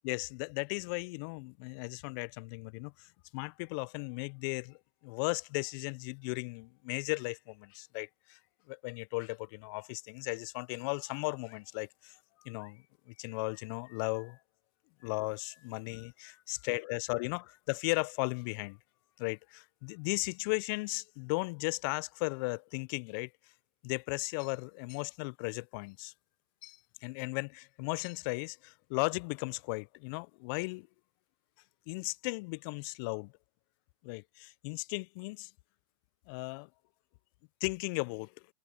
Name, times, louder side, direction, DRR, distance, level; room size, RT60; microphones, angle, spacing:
voice 1, 0.0-3.1 3.3-4.8 5.0-8.4 8.7-12.1 12.5-12.8 13.2-14.4 15.0-18.8 19.2-23.3 23.8-26.1 26.6-30.9 31.9-33.3 34.0-35.5 36.3-36.7 37.6-38.3, left 29 dB, 35° left, 0.5 m, -36 dB
sound 1, 10.9-11.7 12.4-14.4 15.0-16.8 17.3-19.2, left 15 dB, 55° left, 2.0 m, -65 dB
hypercardioid pair, 125°, 20 cm